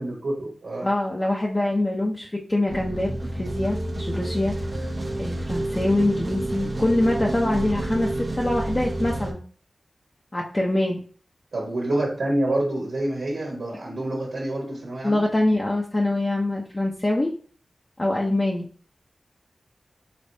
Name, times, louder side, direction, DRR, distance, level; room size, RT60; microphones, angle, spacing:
voice 1, 0.0-0.9 11.5-15.2, right 1 dB, 80° right, -4 dB, 1.4 m, -27 dB
voice 2, 0.8-4.9 5.2-9.4 10.3-11.0 15.0-17.3 18.0-18.7, left 1 dB, 30° left, -3 dB, 0.8 m, -24 dB
sound 1, 2.7-9.3, right 1 dB, 55° right, 1.0 m, -29 dB
5.2 x 3.3 x 2.7 m, 0.42 s
cardioid pair, 50°, 0 cm